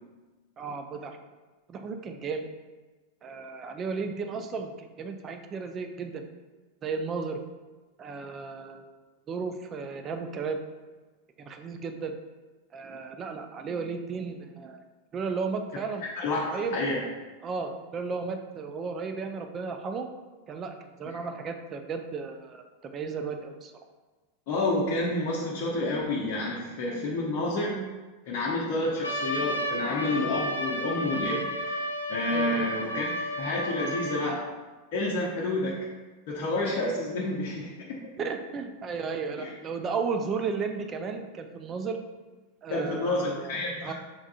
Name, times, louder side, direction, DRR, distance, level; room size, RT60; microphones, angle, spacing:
voice 1, 0.6-1.2 1.7-2.5 3.2-6.2 6.8-7.4 8.0-8.9 9.3-10.6 11.4-12.1 12.7-14.8 15.1-16.0 16.5-16.8 17.4-20.1 20.5-22.6 22.9-23.7 32.3-32.7 38.2-42.0 42.6-43.9, right 5 dB, 25° right, 6 dB, 0.4 m, -34 dB
voice 2, 24.5-27.8 28.3-31.5 32.1-33.1 33.4-34.5 34.9-35.7 36.3-38.0 39.4-39.5 42.7-43.9, left 2 dB, 45° left, -4 dB, 0.7 m, -29 dB
Trumpet, 29.0-34.3, equal, 80° left, 0.4 m, -32 dB
5.2 x 3.5 x 2.3 m, 1.3 s
figure-of-eight pair, 90°, 0 cm